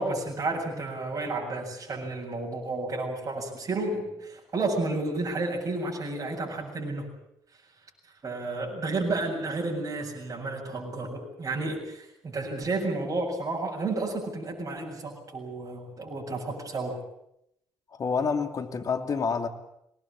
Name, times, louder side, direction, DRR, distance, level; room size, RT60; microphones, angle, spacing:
voice 1, 0.0-7.1 8.2-17.0, right 2 dB, 45° right, -2 dB, 7.4 m, -31 dB
voice 2, 17.9-19.5, left 5 dB, 45° left, 8 dB, 2.9 m, -28 dB
23.5 x 20.0 x 8.7 m, 0.77 s
hypercardioid pair, 55°, 8 cm